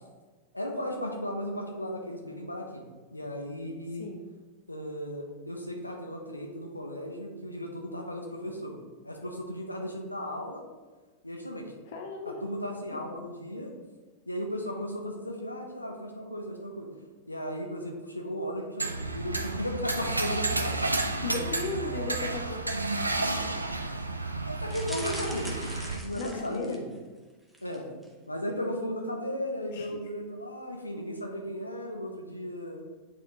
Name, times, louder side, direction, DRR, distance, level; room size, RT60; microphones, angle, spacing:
voice 1, 0.5-4.1 4.7-8.8 9.0-10.6 11.2-11.7 12.2-13.7 14.3-16.9 17.3-20.9 21.8-22.2 23.3-23.5 24.4-25.6 25.9-26.9 27.6-28.0 28.3-32.8, equal, 85° left, 2 dB, 0.8 m, -36 dB
voice 2, 11.9-12.4 21.2-22.6 26.1-26.8 29.7-29.9, left 3 dB, 55° left, 3 dB, 0.7 m, -36 dB
sound 1, 18.8-26.0, right 2 dB, 80° right, 0.4 m, -31 dB
sound 2, 24.7-27.0 27.5-27.8 28.0-28.1, right 1 dB, ahead, 1.0 m, -42 dB
8.7 x 4.3 x 2.9 m, 1.3 s
figure-of-eight pair, 90°, 0 cm